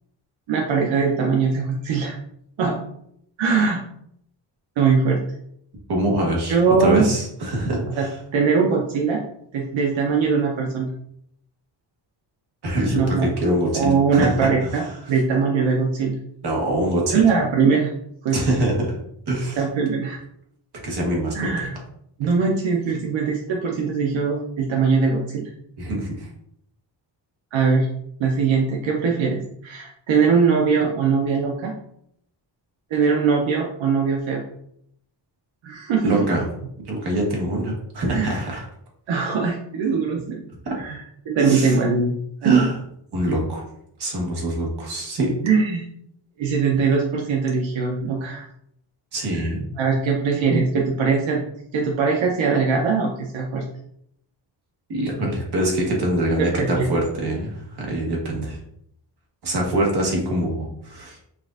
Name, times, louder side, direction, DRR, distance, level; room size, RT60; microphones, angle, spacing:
voice 1, 0.5-2.2 2.6-2.8 3.4-3.8 4.8-5.2 6.5-7.1 8.0-8.1 8.3-9.2 9.5-10.9 13.0-13.3 13.7-14.8 15.1-16.2 17.1-17.9 18.2-18.4 19.6-20.2 21.3-21.7 22.2-25.5 27.5-27.9 28.2-31.7 32.9-34.4 35.6-36.2 38.1-38.4 39.1-40.4 40.8-42.1 42.4-42.6 45.4-45.8 46.4-48.5 49.3-49.4 49.8-51.4 51.7-53.6 56.4-56.9, right 5 dB, 85° right, 0 dB, 0.7 m, -21 dB
voice 2, 5.9-8.1 12.6-14.9 16.4-17.2 18.3-19.0 19.3-19.6 20.8-21.5 25.8-26.3 36.0-36.4 36.7-38.6 41.4-41.7 42.4-42.8 43.1-43.6 44.0-45.3 49.1-49.7 54.9-58.6 59.4-61.2, right 1 dB, 60° right, -1 dB, 1.2 m, -24 dB
6.1 x 2.5 x 2.4 m, 0.72 s
wide cardioid pair, 180°, 45 cm